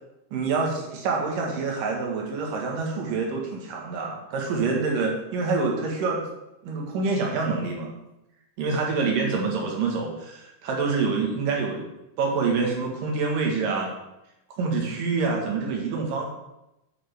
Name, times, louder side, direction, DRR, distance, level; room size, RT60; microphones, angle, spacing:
voice 1, 0.3-6.2 6.6-7.9 8.6-11.9 12.2-13.9 14.6-16.2, right 4 dB, 65° right, 0 dB, 3.0 m, -26 dB
8.6 x 8.6 x 3.5 m, 0.92 s
omnidirectional pair, 4.5 m